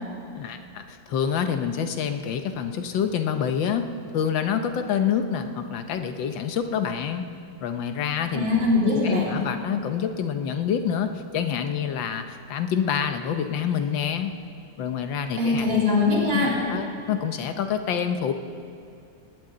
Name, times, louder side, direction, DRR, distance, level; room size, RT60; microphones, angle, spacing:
voice 1, 0.3-7.3 7.6-8.5 9.0-14.3 14.8-15.9 16.3-18.3, left 8 dB, 90° left, 7 dB, 1.7 m, -27 dB
voice 2, 8.3-9.3 15.4-16.6, left 3 dB, 90° right, -6 dB, 4.2 m, -22 dB
18.5 x 18.5 x 3.9 m, 2.5 s
omnidirectional pair, 2.0 m